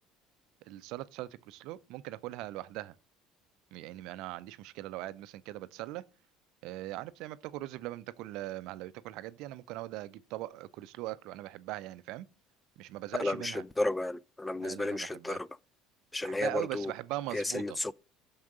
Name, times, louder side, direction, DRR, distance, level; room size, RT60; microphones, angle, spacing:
voice 1, 0.6-3.0 3.7-6.0 6.6-12.3 12.8-13.6 14.6-15.4 16.2-17.8, right 16 dB, 60° right, 0.5 m, -40 dB
voice 2, 13.2-15.5 16.1-16.9 17.3-18.0, left 2 dB, 10° left, 0.4 m, -33 dB
6.3 x 5.9 x 6.6 m
hypercardioid pair, 65°, 0 cm